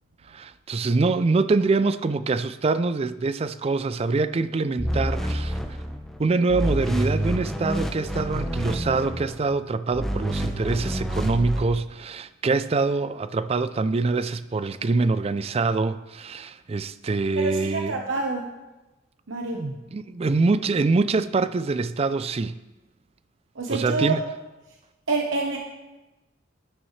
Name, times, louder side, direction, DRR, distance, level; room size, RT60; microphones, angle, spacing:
voice 1, 0.3-5.6 6.2-18.0 19.5-22.6 23.7-24.2, right 3 dB, 30° right, 0.3 m, -24 dB
sound 1, 4.8-6.2 6.5-9.4 9.9-11.6, equal, ahead, 0.9 m, -28 dB
voice 2, 17.4-18.4 19.3-19.6 23.6-24.2 25.1-25.6, right 3 dB, 70° right, 1.0 m, -27 dB
13.0 x 10.0 x 3.2 m
head